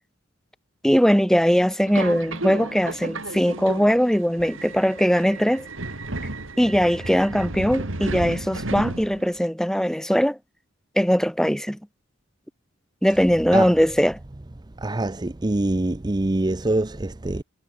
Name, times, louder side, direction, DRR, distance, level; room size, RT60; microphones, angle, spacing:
voice 1, 0.8-5.7 6.6-10.4 11.0-11.8 13.0-14.2, equal, 5° left, 2.0 m, -20 dB
Subway metro underground, 1.9-9.4, right 2 dB, 75° right, 2.8 m, -33 dB
voice 2, 14.8-17.4, right 2 dB, 20° right, 0.6 m, -24 dB
head